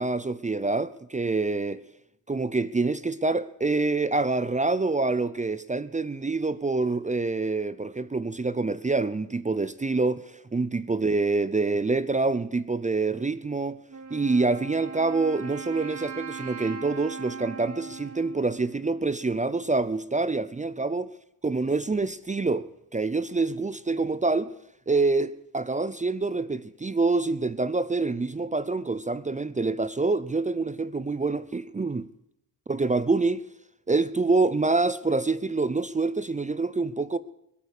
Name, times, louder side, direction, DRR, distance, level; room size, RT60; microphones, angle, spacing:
voice 1, 0.0-1.8 2.3-13.8 14.1-21.1 21.4-24.5 24.9-32.1 32.7-33.4 33.9-37.2, right 3 dB, 20° right, 0.6 m, -26 dB
Wind instrument woodwind instrument, 13.9-19.6, right 6 dB, 50° right, 2.6 m, -40 dB
22.0 x 8.4 x 6.6 m
cardioid pair, 90°, 38 cm